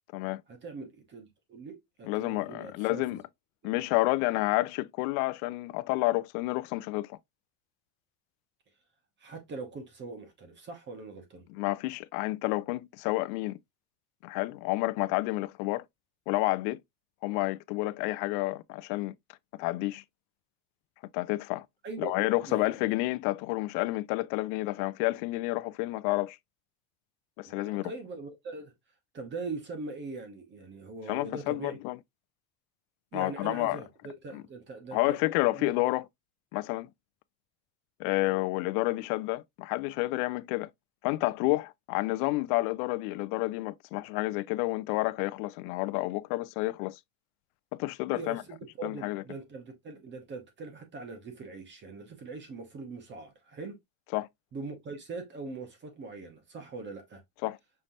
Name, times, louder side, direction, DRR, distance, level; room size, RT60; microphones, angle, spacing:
voice 1, 0.5-3.0 3.6-3.7 9.2-11.4 21.8-22.1 22.5-22.9 27.4-28.7 29.1-31.8 33.1-35.2 35.5-35.7 48.1-53.8 54.5-57.2, right 3 dB, 25° right, 0.9 m, -41 dB
voice 2, 2.0-3.3 3.6-7.2 11.5-13.6 14.2-15.8 16.3-16.8 17.2-19.1 19.6-20.0 21.1-21.7 22.0-26.4 27.4-27.9 31.1-32.0 33.1-33.8 34.3-34.4 34.9-36.1 36.5-36.9 38.0-40.7 41.0-47.0 47.8-48.4 48.8-49.3 54.1-54.3 57.4-57.6, left 20 dB, 85° left, 0.5 m, -30 dB
5.6 x 3.2 x 2.6 m
cardioid pair, 160°, 44 cm